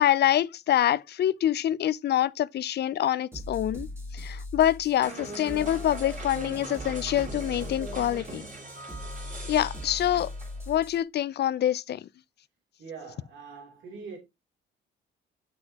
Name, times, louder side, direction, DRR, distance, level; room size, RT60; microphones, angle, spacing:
voice 1, 0.0-3.9 4.1-8.5 9.5-10.3 10.7-12.0, left 11 dB, 55° left, 0.5 m, -25 dB
sound 1, 3.3-11.0, left 2 dB, 10° right, 2.8 m, -40 dB
sound 2, 5.0-10.7, right 2 dB, 40° right, 3.1 m, -41 dB
voice 2, 12.8-14.2, right 5 dB, 75° right, 3.1 m, -43 dB
8.4 x 6.0 x 2.9 m
cardioid pair, 90°, 20 cm